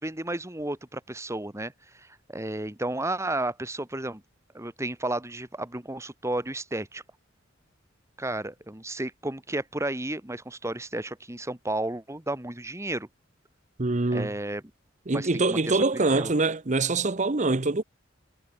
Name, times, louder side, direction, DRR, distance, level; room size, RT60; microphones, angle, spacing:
voice 1, 0.0-4.2 4.5-7.0 8.2-13.1 14.1-14.6 15.1-16.3, right 1 dB, 15° right, 2.1 m, -33 dB
voice 2, 13.8-14.3 15.1-17.8, right 3 dB, 40° right, 0.9 m, -24 dB
head